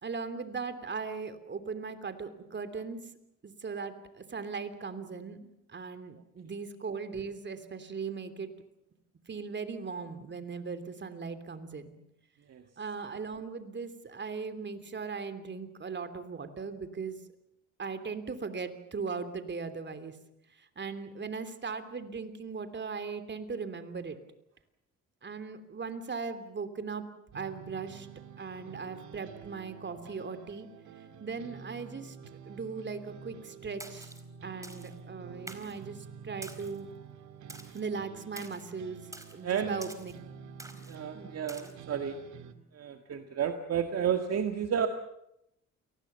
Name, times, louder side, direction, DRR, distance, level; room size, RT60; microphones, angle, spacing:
voice 1, 0.0-3.0 3.4-8.5 9.3-12.0 12.8-17.2 17.8-20.2 20.5-24.2 25.2-27.0 27.3-28.1 28.4-30.7 31.2-32.2 32.5-34.1 34.4-36.9 37.7-39.1 39.3-40.1 41.1-41.4, right 5 dB, 35° right, 10 dB, 3.1 m, -38 dB
sound 1, 27.3-42.5, right 7 dB, 70° right, 2.2 m, -49 dB
Splash splatter, 33.8-34.2 34.6-34.9 35.5-35.8 36.4-36.8 37.5-37.8 38.4-38.6 39.1-39.4 39.8-40.1 40.6-41.0 41.5-41.7, right 1 dB, 10° right, 4.2 m, -47 dB
voice 2, 39.4-39.8 40.7-42.2 42.7-44.9, right 8 dB, 55° right, 6 dB, 1.9 m, -31 dB
28.5 x 19.5 x 6.9 m, 0.80 s
cardioid pair, 90°, 30 cm